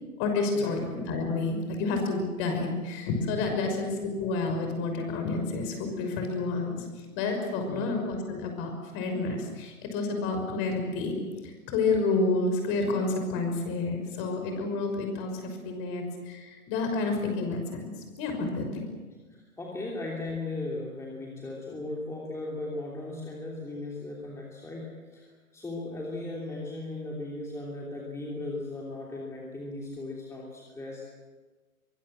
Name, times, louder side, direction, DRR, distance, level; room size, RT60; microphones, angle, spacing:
voice 1, 0.2-6.9 7.1-11.2 11.4-17.9 18.2-18.9, left 3 dB, 30° left, 4 dB, 6.1 m, -29 dB
voice 2, 19.3-25.2 25.5-31.0, left 2 dB, 5° left, -3 dB, 3.1 m, -37 dB
24.0 x 21.5 x 7.6 m, 1.3 s
figure-of-eight pair, 130°, 43 cm